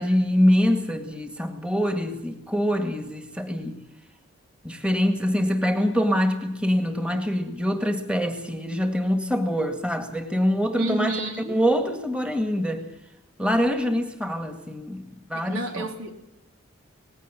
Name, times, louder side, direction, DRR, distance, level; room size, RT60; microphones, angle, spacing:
voice 1, 0.0-3.8 4.6-11.2 11.5-12.9 13.4-15.8, equal, 5° right, 1.9 m, -24 dB
voice 2, 10.8-11.6 15.3-16.2, right 2 dB, 80° right, 3.2 m, -31 dB
19.0 x 16.5 x 9.1 m
head